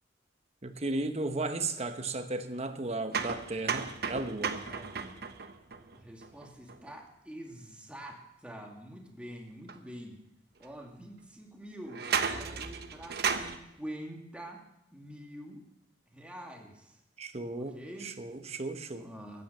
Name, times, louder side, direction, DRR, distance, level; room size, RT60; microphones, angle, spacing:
voice 1, 0.6-4.6 17.2-19.1, right 2 dB, 35° right, 8 dB, 1.1 m, -35 dB
sound 1, 3.1-6.9 9.7-9.8 10.6-10.7 11.9-13.6, right 6 dB, 60° right, 0.9 m, -34 dB
voice 2, 4.6-5.2 5.9-10.2 10.6-14.6 14.9-15.6 16.1-17.0 17.5-18.2 19.0-19.4, right 1 dB, 5° right, 0 dB, 2.3 m, -46 dB
14.5 x 9.5 x 6.8 m, 0.82 s
head